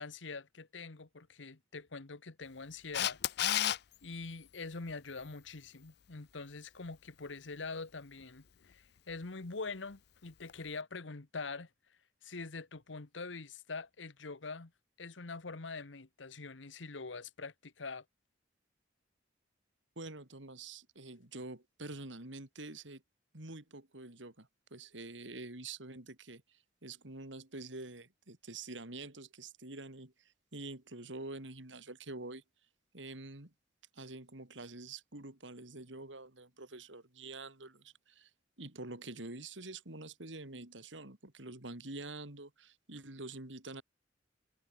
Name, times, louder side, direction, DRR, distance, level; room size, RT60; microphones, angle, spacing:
voice 1, 0.0-3.2 4.0-11.7 12.2-14.7 15.0-18.0, left 4 dB, 90° left, 1.3 m, -44 dB
Camera, 2.9-3.8 10.5-10.6, left 12 dB, 60° left, 0.5 m, -30 dB
voice 2, 19.9-23.0 23.3-32.4 32.9-33.5 33.9-38.3 38.6-43.8, right 2 dB, 80° right, 3.6 m, -47 dB
head